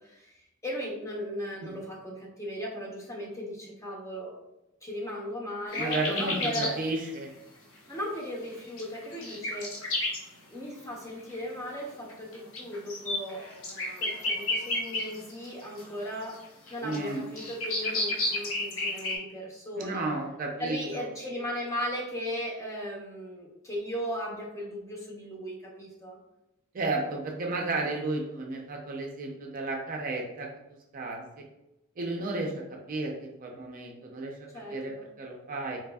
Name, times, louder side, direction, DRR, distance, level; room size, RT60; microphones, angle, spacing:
voice 1, 0.0-4.3 4.8-6.8 7.9-9.7 10.5-13.4 14.0-16.4 16.7-20.1 20.6-26.2 34.5-35.1, equal, 15° left, -3 dB, 0.6 m, -37 dB
sound 1, 5.7-6.7 7.1-7.2 8.5-10.2 11.2-11.3 12.1-15.5 15.8-19.2, left 2 dB, 70° left, 0.8 m, -32 dB
voice 2, 5.7-7.3 16.8-17.2 19.8-21.0 26.7-30.5 30.9-31.4 32.0-35.8, right 2 dB, 40° right, 1 dB, 0.4 m, -33 dB
4.0 x 2.5 x 2.2 m, 0.89 s
head